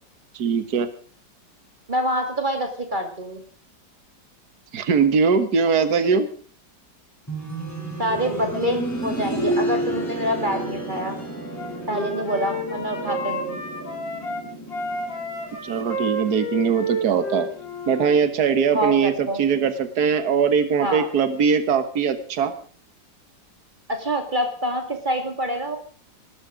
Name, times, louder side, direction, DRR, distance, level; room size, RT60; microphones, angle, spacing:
voice 1, 0.3-0.9 4.7-6.3 15.6-17.5 17.9-22.5, right 6 dB, 60° right, 11 dB, 2.0 m, -21 dB
voice 2, 1.9-3.4 8.0-11.2 11.9-13.6 18.7-19.4 20.8-21.1 23.9-25.8, equal, 25° right, 5 dB, 2.5 m, -26 dB
sound 1, 7.3-18.0 19.4-19.5, right 1 dB, 10° left, 5.3 m, -31 dB
Wind instrument woodwind instrument, 11.5-14.4 14.7-18.2, equal, 80° left, 4.3 m, -31 dB
20.5 x 12.5 x 5.1 m, 0.44 s
omnidirectional pair, 2.0 m